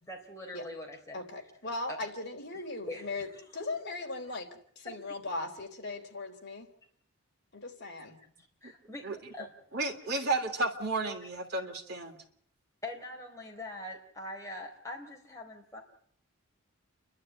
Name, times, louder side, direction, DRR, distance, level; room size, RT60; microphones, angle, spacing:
voice 1, 0.0-1.2 2.9-3.5 4.8-5.0 8.6-9.5 12.8-15.8, left 1 dB, 15° left, 0 dB, 3.8 m, -43 dB
voice 2, 1.1-3.3 3.5-6.7 7.8-8.2, left 2 dB, 50° left, 2 dB, 3.7 m, -38 dB
voice 3, 9.7-12.2, right 2 dB, 45° right, 2 dB, 3.3 m, -32 dB
29.5 x 12.0 x 9.3 m, 0.64 s
head